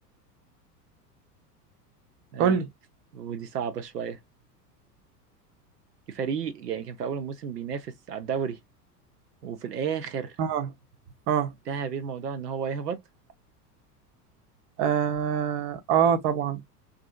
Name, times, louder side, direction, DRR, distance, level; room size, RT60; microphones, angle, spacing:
voice 1, 3.1-4.2 6.1-8.6 9.4-10.4 11.7-13.0, right 7 dB, 75° right, 0.7 m, -32 dB
voice 2, 14.8-16.6, right 8 dB, 30° right, 0.6 m, -24 dB
2.6 x 2.4 x 2.3 m
figure-of-eight pair, 85°, 48 cm